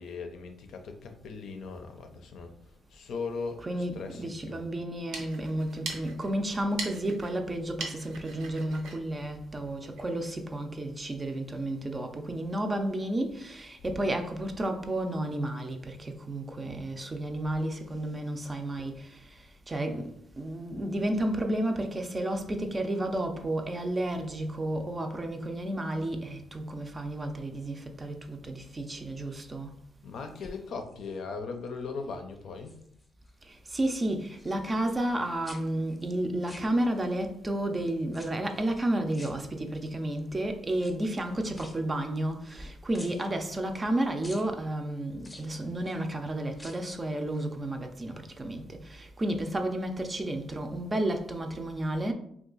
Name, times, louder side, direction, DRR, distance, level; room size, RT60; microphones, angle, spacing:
voice 1, 0.0-4.6 13.8-14.0 30.0-32.8, left 4 dB, 70° left, 0.5 m, -39 dB
voice 2, 3.6-3.9 4.2-29.7 33.4-52.1, right 1 dB, 25° right, 0.5 m, -32 dB
sound 1, 4.8-10.1, right 3 dB, 85° right, 0.7 m, -42 dB
sound 2, 30.2-31.2 31.7-32.1 32.4-33.4 33.6-35.2 35.4-37.2 38.1-38.7 39.1-40.0 40.7-42.6 42.9-43.9 44.2-44.5 45.2-46.0 46.5-47.0 47.3-47.4, left 1 dB, 15° left, 0.6 m, -52 dB
2.8 x 2.3 x 3.8 m
cardioid pair, 90°, 0 cm